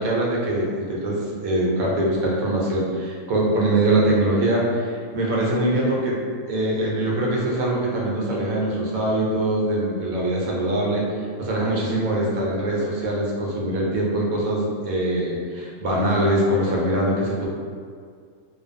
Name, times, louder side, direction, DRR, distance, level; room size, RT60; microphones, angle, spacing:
voice 1, 0.0-4.9 5.1-6.2 6.5-11.0 11.4-17.5, right 1 dB, 75° right, -4 dB, 1.0 m, -23 dB
2.4 x 2.3 x 2.5 m, 2.1 s
omnidirectional pair, 1.6 m